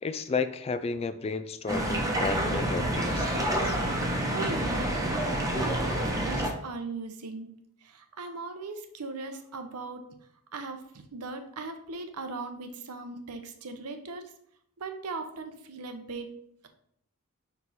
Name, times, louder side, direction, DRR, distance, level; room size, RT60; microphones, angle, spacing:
voice 1, 0.0-3.8, left 4 dB, 25° left, 12 dB, 0.3 m, -33 dB
sound 1, 1.7-6.5, right 1 dB, 15° right, 1.0 m, -28 dB
voice 2, 4.0-5.2 5.5-7.5 7.8-10.0 10.5-10.8 11.1-14.3 14.8-16.3, right 3 dB, 85° right, 6 dB, 0.8 m, -39 dB
5.4 x 4.7 x 4.1 m, 0.68 s
head